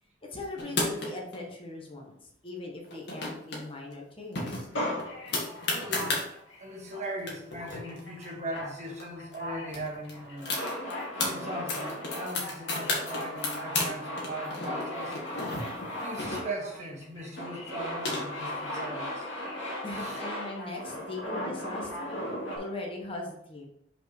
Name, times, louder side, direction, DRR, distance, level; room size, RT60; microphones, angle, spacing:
voice 1, 0.2-2.2 2.4-4.7 19.8-22.1 22.5-23.7, left 2 dB, 30° left, 0 dB, 1.0 m, -40 dB
sound 1, 0.6-1.4 2.8-3.6 3.9-4.0 4.4-6.3 6.9-7.0 7.2-9.0 9.3-9.4 9.7-11.3 11.7-13.9 14.2-16.8 17.6-18.6, left 2 dB, 65° left, 1.8 m, -33 dB
Male speech man speaking, 4.7-6.6 6.9-7.3 7.6-22.6, left 1 dB, 90° left, 2.0 m, -37 dB
voice 2, 5.7-6.2 6.6-10.6 11.2-15.2 16.0-19.3 19.9-20.2, right 1 dB, 40° right, 0 dB, 1.5 m, -39 dB
5.6 x 4.5 x 4.7 m, 0.79 s
head